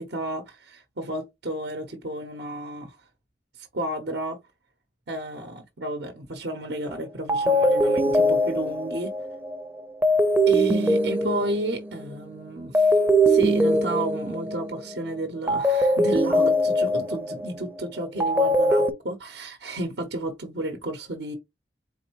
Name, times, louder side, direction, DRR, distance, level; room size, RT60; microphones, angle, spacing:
voice 1, 0.0-3.0 3.6-4.4 5.1-9.1 10.5-21.3, right 1 dB, 70° right, 0.8 m, -32 dB
sound 1, 6.8-7.0 7.3-12.2 12.7-15.0 15.5-18.9, equal, 10° right, 0.5 m, -22 dB
4.3 x 3.8 x 2.9 m
head